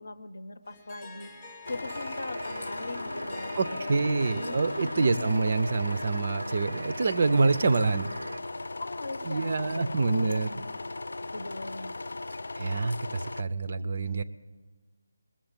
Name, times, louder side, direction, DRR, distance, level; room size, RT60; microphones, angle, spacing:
voice 1, 0.0-4.0 4.3-5.3 8.8-10.7 11.1-11.9, left 2 dB, 55° left, 14 dB, 0.7 m, -40 dB
Harp, 0.7-6.4, left 2 dB, 10° left, 0.6 m, -46 dB
sound 1, 1.7-13.4, left 2 dB, 90° left, 0.4 m, -38 dB
sound 2, 1.8-8.4, right 2 dB, 75° right, 0.6 m, -42 dB
voice 2, 3.6-8.1 9.2-10.5 12.6-14.2, right 3 dB, 30° right, 12 dB, 0.4 m, -26 dB
20.5 x 7.4 x 8.8 m, 1.3 s
figure-of-eight pair, 180°, 0 cm